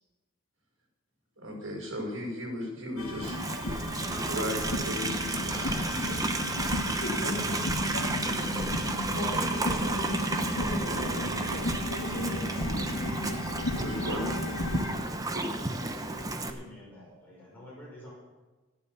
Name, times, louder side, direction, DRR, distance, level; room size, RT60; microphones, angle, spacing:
voice 1, 1.4-3.4 4.3-6.9 13.8-14.2, equal, 80° right, 0 dB, 5.6 m, -36 dB
sound 1, 3.0-14.9, left 1 dB, 85° left, 1.8 m, -33 dB
Livestock farm animals working animals, 3.2-16.5, right 3 dB, 15° right, 0.8 m, -33 dB
voice 2, 6.4-13.1, left 1 dB, 55° left, 1 dB, 4.8 m, -40 dB
voice 3, 13.9-14.6 14.9-18.1, equal, 10° left, -6 dB, 6.0 m, -46 dB
14.5 x 9.5 x 7.0 m, 1.2 s
head